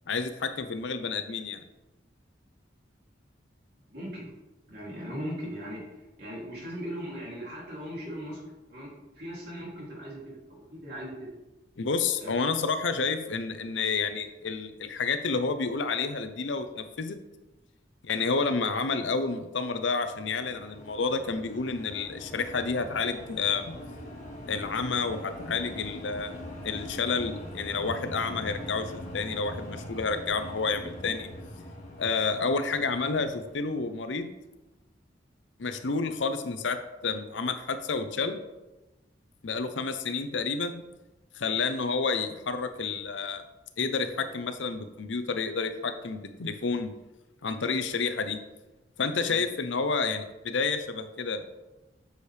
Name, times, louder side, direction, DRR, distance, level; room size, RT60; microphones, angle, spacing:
voice 1, 0.1-1.6 11.8-17.2 18.0-23.7 24.5-26.3 26.6-28.9 29.1-31.3 32.0-34.3 35.6-38.4 39.4-40.8 41.3-43.4 43.8-46.9 47.4-48.4 49.0-51.4, left 4 dB, 80° left, 9 dB, 0.7 m, -30 dB
voice 2, 3.9-4.3 4.7-5.8 6.2-8.4 8.7-8.9 9.2-11.3 12.2-12.4 49.3-49.4, equal, 55° right, -4 dB, 2.8 m, -38 dB
sound 1, 19.8-34.2, left 1 dB, 40° left, 1.8 m, -42 dB
8.2 x 6.4 x 3.4 m, 1.0 s
head